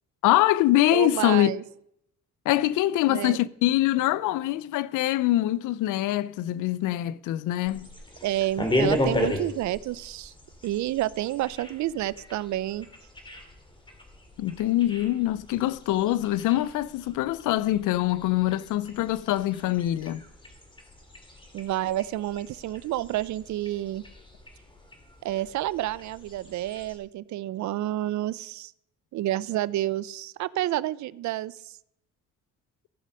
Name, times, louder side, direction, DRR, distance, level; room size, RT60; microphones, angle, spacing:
voice 1, 0.2-1.5 2.5-7.9 14.4-20.2, left 15 dB, 85° left, 0.5 m, -24 dB
voice 2, 0.9-1.6 3.1-3.4 8.2-10.3 10.6-12.9 21.5-24.0 25.2-28.7 29.1-31.7, right 14 dB, 70° right, 0.5 m, -29 dB
sound 1, 7.6-27.0, left 1 dB, 15° left, 2.1 m, -36 dB
15.0 x 5.5 x 5.2 m
cardioid pair, 90°, 30 cm